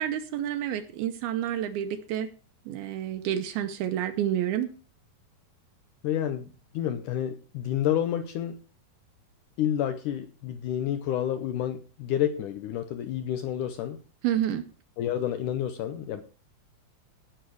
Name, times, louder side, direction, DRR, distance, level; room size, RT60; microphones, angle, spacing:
voice 1, 0.0-2.3 2.7-4.7 14.2-14.6, right 11 dB, 80° right, 7 dB, 2.7 m, -29 dB
voice 2, 6.0-8.6 9.6-14.0 15.0-16.2, left 10 dB, 85° left, 10 dB, 1.8 m, -29 dB
17.0 x 6.7 x 4.7 m, 0.36 s
omnidirectional pair, 4.6 m